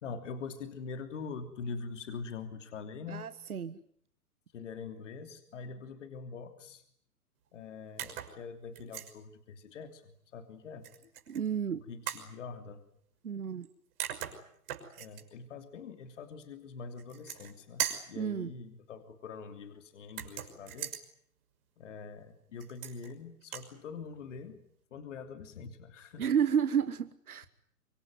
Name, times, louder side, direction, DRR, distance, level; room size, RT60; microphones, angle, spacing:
voice 1, 0.0-3.3 4.5-6.8 7.5-11.1 11.9-12.8 15.0-20.9 21.8-24.6 24.9-26.3, left 5 dB, 50° left, 9 dB, 3.2 m, -44 dB
voice 2, 3.1-3.8 11.3-11.8 13.2-13.7 18.1-18.5 26.2-27.5, right 8 dB, 70° right, 13 dB, 1.4 m, -31 dB
sound 1, 8.0-8.4 8.7-9.1 10.8-11.4 12.1-12.3 13.6-13.7 14.0-15.2 17.0-17.5 17.8-18.1 20.1-21.0 22.6-23.1 23.4-23.7, right 11 dB, 40° right, 6.1 m, -39 dB
26.0 x 23.5 x 9.5 m, 0.65 s
figure-of-eight pair, 125°, 45 cm